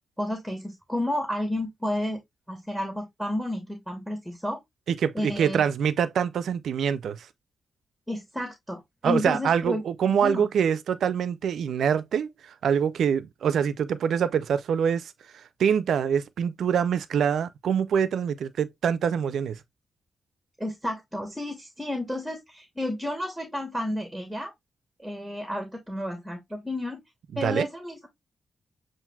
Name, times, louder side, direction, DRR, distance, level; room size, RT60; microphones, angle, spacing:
voice 1, 0.2-2.2 2.5-4.6 5.1-5.6 8.1-10.5 20.6-24.5 25.0-27.0 27.4-28.1, left 1 dB, ahead, 1.0 m, -31 dB
voice 2, 4.9-7.3 9.0-15.1 15.6-19.6 27.3-27.7, right 7 dB, 80° right, 0.4 m, -25 dB
7.2 x 2.5 x 2.3 m
cardioid pair, 105°, 0 cm